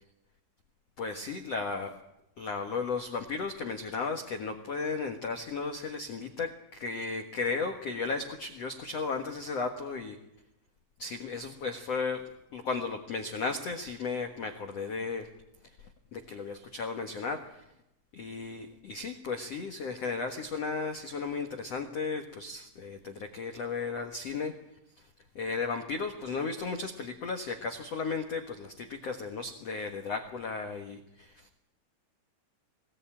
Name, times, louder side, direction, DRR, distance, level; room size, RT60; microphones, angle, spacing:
voice 1, 1.0-2.0 2.4-10.2 11.0-15.3 15.8-17.6 18.1-24.5 25.0-25.1 25.3-31.5, left 4 dB, 90° left, 4 dB, 1.4 m, -35 dB
23.0 x 18.5 x 8.9 m, 0.86 s
omnidirectional pair, 5.5 m